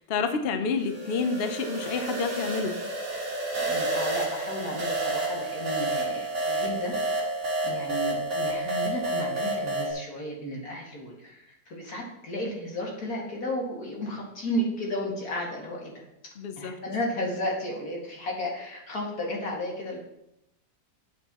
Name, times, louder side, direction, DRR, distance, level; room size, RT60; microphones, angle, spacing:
voice 1, 0.0-2.8 16.4-16.8, left 4 dB, 80° left, 7 dB, 0.5 m, -29 dB
sound 1, 0.8-9.9, right 2 dB, 40° right, 2.3 m, -30 dB
voice 2, 3.6-7.0 7.6-16.0 16.6-20.0, left 1 dB, 50° left, -2 dB, 2.5 m, -33 dB
9.0 x 7.9 x 3.0 m, 0.81 s
omnidirectional pair, 2.0 m